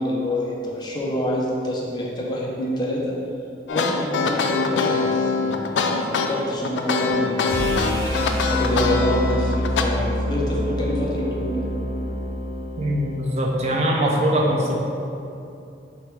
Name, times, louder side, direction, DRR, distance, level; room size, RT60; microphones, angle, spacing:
voice 1, 0.0-3.1 3.7-11.7, left 1 dB, 25° left, -3 dB, 0.5 m, -27 dB
sound 1, 3.7-9.8, left 4 dB, 85° left, 0.3 m, -23 dB
sound 2, 7.5-13.6, equal, 80° right, 1.0 m, -27 dB
voice 2, 12.8-14.7, right 1 dB, 35° right, -2 dB, 0.4 m, -22 dB
3.3 x 3.2 x 4.6 m, 2.7 s
head